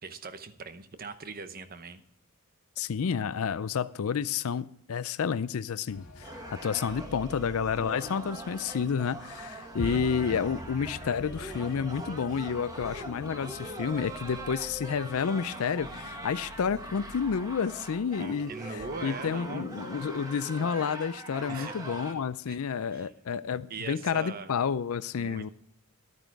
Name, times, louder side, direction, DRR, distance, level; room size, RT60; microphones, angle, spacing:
voice 1, 0.0-2.0 9.8-10.4 18.2-19.7 21.5-21.8 22.5-22.6 22.9-23.1 23.7-24.5 25.2-25.5, right 4 dB, 40° right, 11 dB, 0.9 m, -41 dB
voice 2, 2.8-6.3 6.6-25.5, left 6 dB, 70° left, 16 dB, 0.4 m, -30 dB
sound 1, 5.9-20.1, left 1 dB, 85° left, 1.9 m, -46 dB
sound 2, 6.2-22.1, right 1 dB, 15° right, 1.5 m, -42 dB
12.5 x 9.0 x 4.7 m, 0.69 s
head